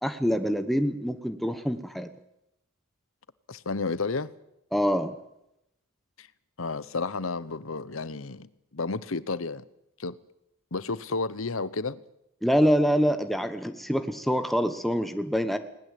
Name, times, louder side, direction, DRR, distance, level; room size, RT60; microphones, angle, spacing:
voice 1, 0.0-2.1 4.7-5.1 12.4-15.6, equal, ahead, 1.2 m, -25 dB
voice 2, 3.5-4.3 6.2-6.3 6.6-9.6 10.0-10.2 10.7-12.0, left 3 dB, 75° left, 1.0 m, -31 dB
20.5 x 19.0 x 8.5 m
head